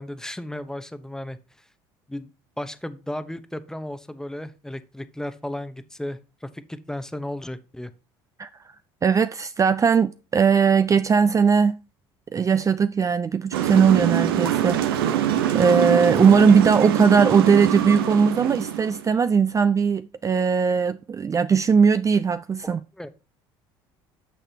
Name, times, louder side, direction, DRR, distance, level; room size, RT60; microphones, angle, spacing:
voice 1, 0.0-1.4 2.1-2.3 2.6-7.9 22.6-23.1, left 1 dB, 5° left, 0.8 m, -34 dB
voice 2, 9.0-11.8 12.3-15.2 15.5-22.8, right 6 dB, 25° right, 0.4 m, -19 dB
sound 1, 13.5-19.1, right 10 dB, 85° right, 0.8 m, -24 dB
9.1 x 6.5 x 2.8 m
hypercardioid pair, 75°, 12 cm